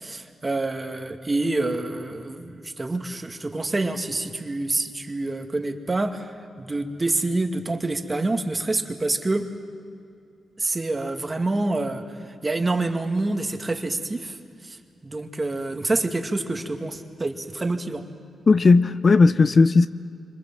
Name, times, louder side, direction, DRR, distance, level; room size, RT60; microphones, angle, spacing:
voice 1, 0.0-9.5 10.6-14.4 14.6-14.8 15.0-18.0, right 2 dB, 25° right, 2.2 m, -27 dB
voice 2, 18.5-19.9, left 4 dB, 45° left, 0.7 m, -16 dB
26.5 x 25.5 x 7.5 m
cardioid pair, 65°, 0 cm